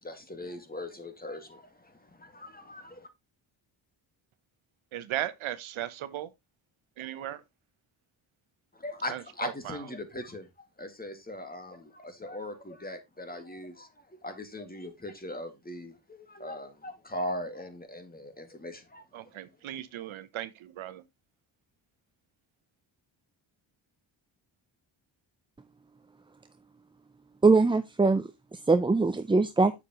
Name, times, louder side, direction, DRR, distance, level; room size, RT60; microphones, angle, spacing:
voice 1, 0.0-3.1 8.7-19.0, left 1 dB, 20° left, 2.0 m, -40 dB
voice 2, 4.9-6.3 7.0-7.4 9.1-9.9 19.1-21.0, right 12 dB, 85° right, 1.0 m, -37 dB
voice 3, 27.4-29.8, right 3 dB, 10° right, 0.4 m, -23 dB
7.1 x 6.9 x 2.9 m
cardioid pair, 85°, 47 cm